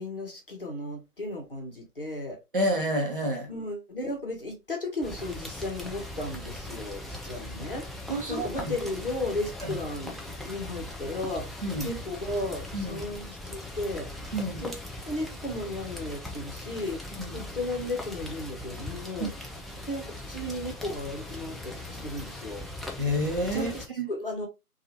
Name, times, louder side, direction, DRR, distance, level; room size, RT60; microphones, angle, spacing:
voice 1, 0.0-2.4 3.5-14.1 14.6-14.7 15.1-17.0 17.3-19.3 19.8-22.7 23.5-24.5, left 1 dB, 35° left, 0.8 m, -35 dB
voice 2, 2.5-3.5 8.1-8.7 9.6-9.8 11.6-11.9 12.7-13.0 14.3-14.6 17.1-17.5 19.2-19.3 23.0-24.1, equal, 35° right, 0.7 m, -29 dB
Rain, 5.0-23.9, left 1 dB, ahead, 0.3 m, -40 dB
2.7 x 2.4 x 2.8 m
figure-of-eight pair, 155°, 45 cm